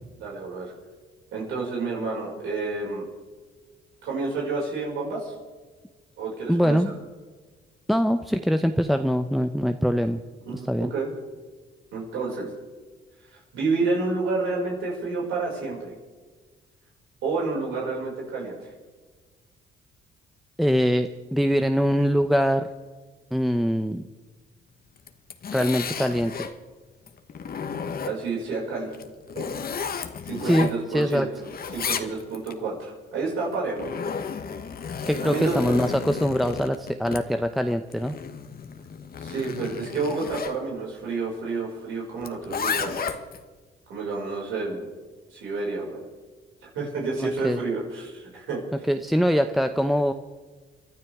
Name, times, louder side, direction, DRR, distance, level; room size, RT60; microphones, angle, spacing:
voice 1, 0.2-0.7 1.3-3.0 4.0-5.3 6.2-6.8 10.4-11.1 11.9-12.5 13.5-15.9 17.2-18.7 28.0-28.9 29.3-29.4 30.2-31.2 31.7-33.9 35.2-35.8 39.2-43.1 43.9-44.8 45.3-46.1 46.7-48.6, right 3 dB, 85° right, -4 dB, 5.8 m, -29 dB
voice 2, 6.5-6.9 7.9-10.2 10.7-10.9 20.6-22.7 23.3-24.0 25.5-26.3 30.4-31.3 35.1-38.2 47.2-47.6 48.9-50.1, equal, ahead, 7 dB, 0.7 m, -23 dB
Zipper (clothing), 25.0-26.6 27.1-28.4 28.9-31.1 31.4-32.5 33.4-40.6 42.2-43.4, left 6 dB, 50° left, 1.3 m, -33 dB
29.0 x 12.0 x 3.6 m, 1.4 s
cardioid pair, 90°, 20 cm